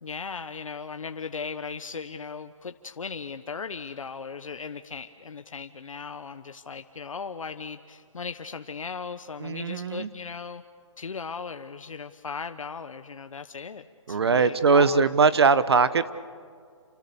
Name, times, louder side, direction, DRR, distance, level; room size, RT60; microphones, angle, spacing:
voice 1, 0.0-10.6 11.0-15.1, left 5 dB, 85° left, 8 dB, 1.1 m, -37 dB
voice 2, 9.4-10.1 14.1-16.1, right 5 dB, 50° right, 14 dB, 1.1 m, -21 dB
29.0 x 26.0 x 7.0 m, 2.1 s
hypercardioid pair, 180°, 17 cm